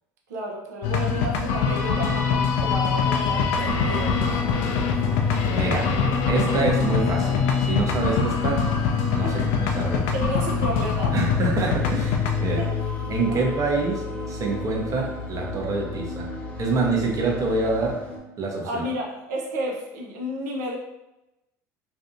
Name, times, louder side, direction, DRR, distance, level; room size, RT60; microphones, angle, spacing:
voice 1, 0.3-4.5 9.2-9.4 10.1-11.2 12.6-12.7 13.3-13.6 18.6-20.8, right 1 dB, 80° right, 0 dB, 0.6 m, -32 dB
sound 1, 0.8-17.9, left 6 dB, 70° left, 0.4 m, -25 dB
sound 2, 3.2-18.2, equal, 15° left, 0.7 m, -34 dB
voice 2, 5.5-5.9 6.3-8.6 9.1-10.2 11.1-12.6 13.1-16.3 16.6-18.0 18.4-18.8, right 3 dB, 40° right, -1 dB, 0.8 m, -26 dB
2.6 x 2.3 x 2.6 m, 0.94 s
hypercardioid pair, 80°, 9 cm